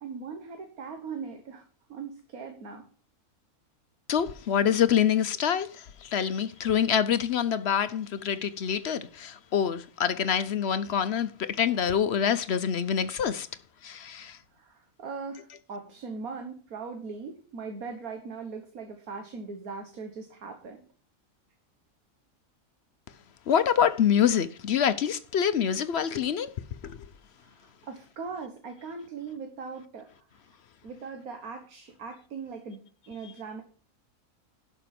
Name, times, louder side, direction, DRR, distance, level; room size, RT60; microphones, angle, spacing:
voice 1, 0.0-1.6 1.9-2.8 14.6-20.9 27.4-30.1 30.8-32.8 33.1-33.6, right 5 dB, 85° right, 1.8 m, -40 dB
voice 2, 4.1-13.5 13.8-14.4 23.5-26.5 26.8-27.0, left 8 dB, 60° left, 0.8 m, -26 dB
11.5 x 6.0 x 5.8 m
omnidirectional pair, 1.5 m